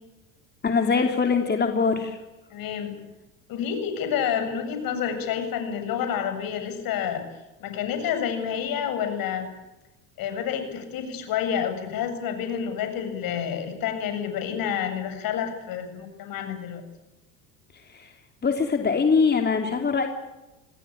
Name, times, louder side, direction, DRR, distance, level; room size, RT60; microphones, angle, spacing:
voice 1, 0.6-2.2 17.9-18.1 18.4-20.1, left 5 dB, 25° left, 4 dB, 3.3 m, -23 dB
voice 2, 2.5-3.0 3.5-7.2 7.6-9.5 10.2-16.8, left 8 dB, 55° left, 8 dB, 7.6 m, -29 dB
26.5 x 19.5 x 8.7 m, 1.0 s
hypercardioid pair, 80°, 41 cm